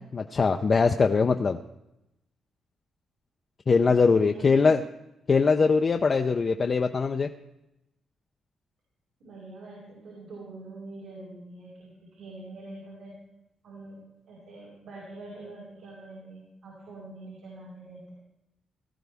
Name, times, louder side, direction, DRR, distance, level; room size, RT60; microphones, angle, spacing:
voice 1, 0.1-1.6 3.7-4.8 5.3-7.3, left 4 dB, 35° left, 4 dB, 0.5 m, -22 dB
voice 2, 3.8-4.8 9.2-13.1 13.6-14.0 14.3-18.1, right 2 dB, 80° right, -7 dB, 5.8 m, -44 dB
18.5 x 13.5 x 3.5 m, 0.90 s
cardioid pair, 130°, 0 cm